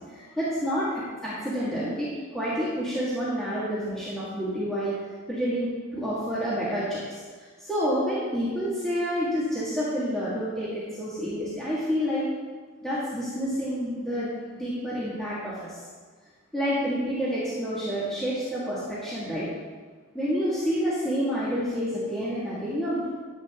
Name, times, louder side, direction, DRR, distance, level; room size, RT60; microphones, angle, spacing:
voice 1, 0.1-4.9 5.3-7.2 7.6-12.2 12.8-15.7 16.5-19.5 20.1-23.1, equal, ahead, -11 dB, 2.1 m, -28 dB
12.0 x 7.9 x 3.8 m, 1.5 s
head